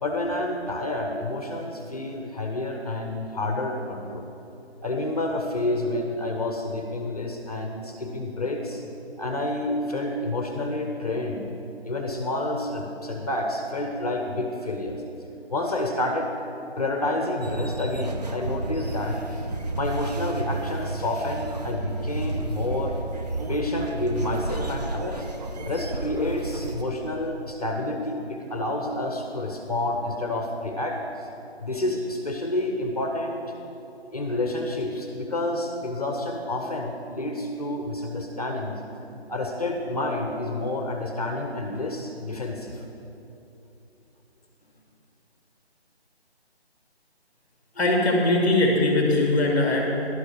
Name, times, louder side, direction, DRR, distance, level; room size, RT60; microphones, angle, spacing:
voice 1, 0.0-4.3 4.8-8.8 9.2-11.5 11.8-15.0 15.5-16.3 16.8-19.5 19.8-23.0 23.5-25.3 25.6-31.3 31.6-33.4 34.1-38.8 39.3-42.8, left 2 dB, 35° left, 3 dB, 0.8 m, -29 dB
sound 1, 17.4-26.8, right 2 dB, 40° right, 0.6 m, -31 dB
voice 2, 47.8-49.8, left 2 dB, 10° left, -1 dB, 1.8 m, -21 dB
14.5 x 12.0 x 3.4 m, 2.9 s
figure-of-eight pair, 165°, 33 cm